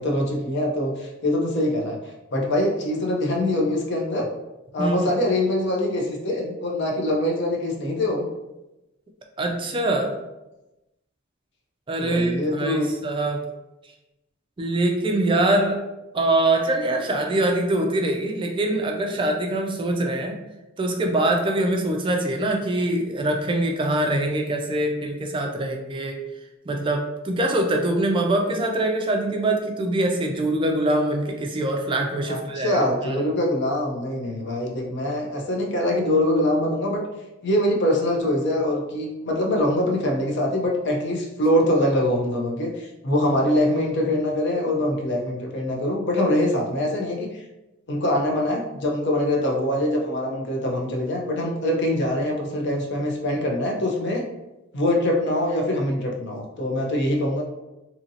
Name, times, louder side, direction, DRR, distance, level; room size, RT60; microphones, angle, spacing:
voice 1, 0.0-2.0 2.3-4.3 4.7-8.3 12.0-12.9 32.3-37.0 37.4-47.4 47.9-54.2 54.7-57.4, left 1 dB, 60° left, 0 dB, 0.6 m, -23 dB
voice 2, 4.8-5.1 9.4-10.1 11.9-13.4 14.6-15.8 16.1-20.4 20.8-26.2 26.7-33.2, right 1 dB, 25° right, 3 dB, 0.3 m, -23 dB
2.8 x 2.6 x 2.6 m, 0.97 s
head